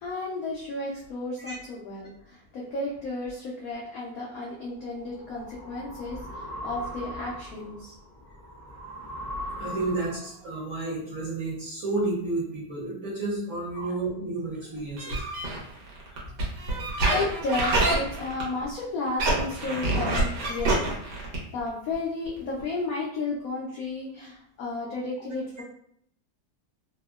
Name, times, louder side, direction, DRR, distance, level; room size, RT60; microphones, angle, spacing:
voice 1, 0.0-7.9 13.7-13.9 16.7-25.6, left 3 dB, 80° left, -3 dB, 0.7 m, -33 dB
sound 1, 4.6-10.4, equal, 75° right, 0.3 m, -40 dB
voice 2, 9.6-15.2 15.5-15.6 21.2-21.3, right 2 dB, 55° right, -6 dB, 1.0 m, -31 dB
sound 2, 15.0-18.7 19.1-21.6 21.9-22.0 22.3-22.4 22.6-22.7, right 2 dB, 90° right, 1.6 m, -26 dB
3.5 x 2.1 x 2.2 m, 0.70 s
omnidirectional pair, 2.0 m